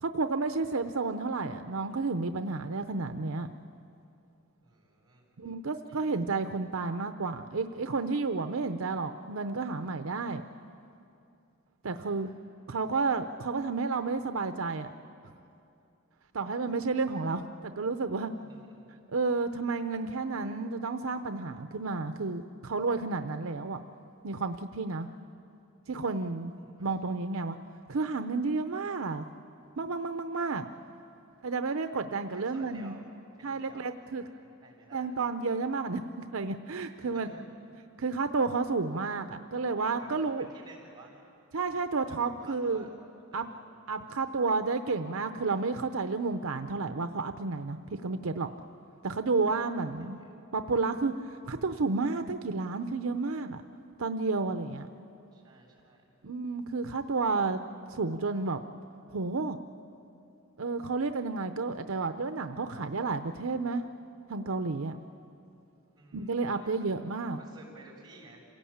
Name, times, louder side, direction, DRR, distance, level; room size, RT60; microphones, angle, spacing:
voice 1, 0.0-3.5 5.4-10.4 11.8-12.3 12.7-14.9 16.3-18.3 19.1-23.8 24.2-25.1 25.9-26.5 26.8-27.6 27.9-29.2 29.8-30.7 31.4-32.9 33.4-34.2 34.9-37.3 38.0-40.5 41.5-42.9 43.3-43.5 43.9-48.5 49.0-50.2 50.5-53.6 54.0-54.9 56.2-57.6 57.9-58.6 59.1-59.6 60.6-63.9 64.3-65.0 66.1-67.4, right 4 dB, 70° right, 8 dB, 0.7 m, -31 dB
voice 2, 4.6-5.6 5.9-6.0 12.0-12.4 18.4-18.9 26.6-27.2 32.3-33.0 33.4-35.2 37.0-37.5 39.9-41.3 42.1-42.9 43.3-43.8 49.4-49.5 54.7-56.2 65.9-67.1 67.3-68.5, right 2 dB, 20° right, -6 dB, 6.7 m, -54 dB
27.0 x 17.0 x 8.7 m, 2.6 s
head